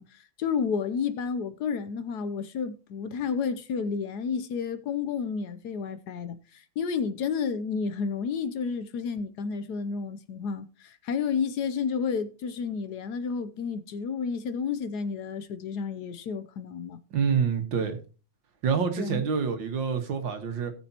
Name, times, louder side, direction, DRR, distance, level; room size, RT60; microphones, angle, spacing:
voice 1, 0.0-17.0 19.0-19.3, left 6 dB, 65° left, 1.1 m, -31 dB
voice 2, 17.1-18.0 18.6-20.7, right 6 dB, 80° right, 2.1 m, -27 dB
17.5 x 6.7 x 2.9 m
omnidirectional pair, 2.0 m